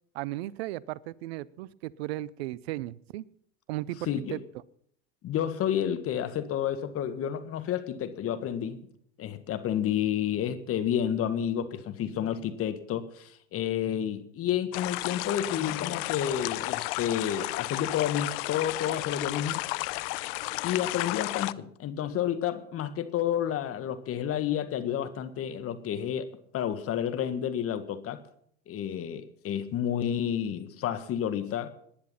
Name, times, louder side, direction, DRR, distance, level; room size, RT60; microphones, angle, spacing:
voice 1, 0.1-3.2 3.7-4.4, right 16 dB, 70° right, 23 dB, 0.6 m, -35 dB
voice 2, 4.1-4.4 5.2-8.8 9.2-19.6 20.6-26.3 26.5-28.2 28.7-31.7, left 10 dB, 45° left, 11 dB, 1.7 m, -30 dB
sound 1, 14.7-21.5, left 23 dB, 65° left, 0.6 m, -33 dB
19.0 x 10.5 x 5.7 m, 0.67 s
hypercardioid pair, 80°, 32 cm